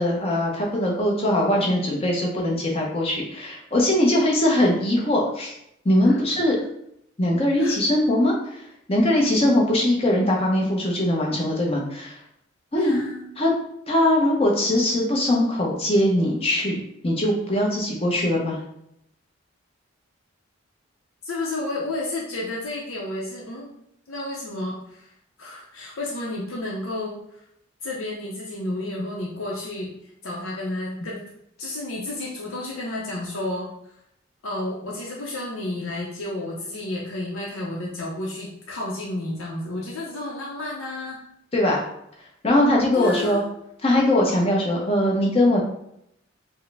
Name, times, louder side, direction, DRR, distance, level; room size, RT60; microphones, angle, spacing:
voice 1, 0.0-5.5 5.8-6.6 7.2-12.2 12.7-13.0 13.4-13.5 13.9-18.6 41.5-41.8 42.4-43.4 43.8-45.6, left 1 dB, 30° left, -2 dB, 0.7 m, -21 dB
voice 2, 12.7-13.3 21.2-23.7 24.1-25.1 25.4-27.4 27.8-29.9 30.2-31.2 31.6-33.9 34.4-41.2 42.9-43.4, left 2 dB, 85° left, -4 dB, 0.7 m, -31 dB
4.5 x 2.1 x 3.3 m, 0.77 s
head